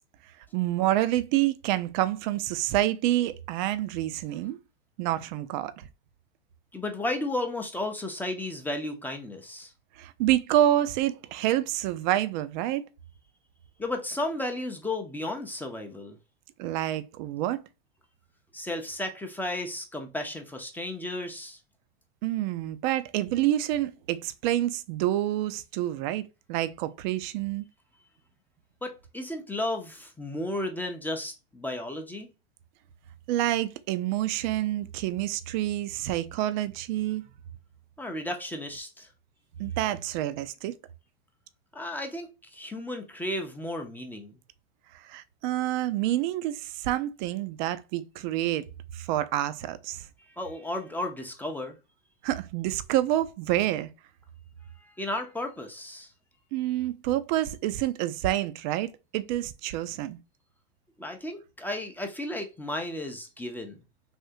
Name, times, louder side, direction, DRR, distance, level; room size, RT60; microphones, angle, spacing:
voice 1, 0.5-4.6 5.0-5.9 10.0-12.8 16.6-17.6 22.2-27.7 33.3-37.2 39.6-40.7 45.0-48.7 48.9-50.1 52.2-53.9 56.5-60.2, right 13 dB, 50° right, 0.5 m, -28 dB
voice 2, 6.7-9.7 13.8-16.2 18.5-21.6 28.8-32.3 38.0-39.1 41.7-44.4 50.4-51.7 54.8-56.1 61.0-63.8, left 1 dB, 5° left, 0.6 m, -34 dB
3.5 x 2.7 x 2.6 m
hypercardioid pair, 110°, 30 cm